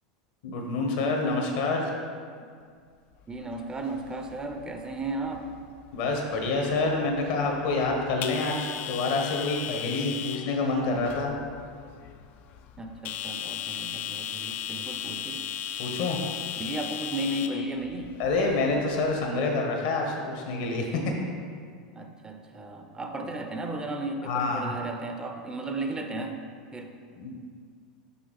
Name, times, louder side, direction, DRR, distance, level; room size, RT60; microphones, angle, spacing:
voice 1, 0.4-1.9 5.9-11.3 15.8-16.2 18.2-21.1 24.2-24.7 27.2-27.3, left 3 dB, 65° left, 1 dB, 1.3 m, -27 dB
sound 1, 3.2-19.3, left 10 dB, 45° left, 0.4 m, -38 dB
voice 2, 3.3-5.5 12.8-15.4 16.6-18.2 21.9-26.4 26.7-26.9, right 2 dB, 20° right, 5 dB, 0.6 m, -34 dB
5.7 x 5.6 x 4.1 m, 2.1 s
hypercardioid pair, 100°, 4 cm